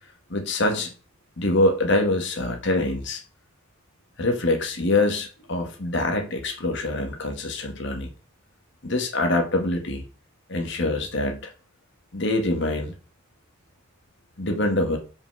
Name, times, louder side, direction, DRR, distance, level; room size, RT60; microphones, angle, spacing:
voice 1, 0.3-0.9 1.4-3.2 4.2-8.1 8.8-10.0 10.5-11.5 12.1-12.9 14.4-15.0, left 2 dB, 55° left, 4 dB, 1.5 m, -24 dB
5.3 x 5.3 x 6.0 m, 0.36 s
head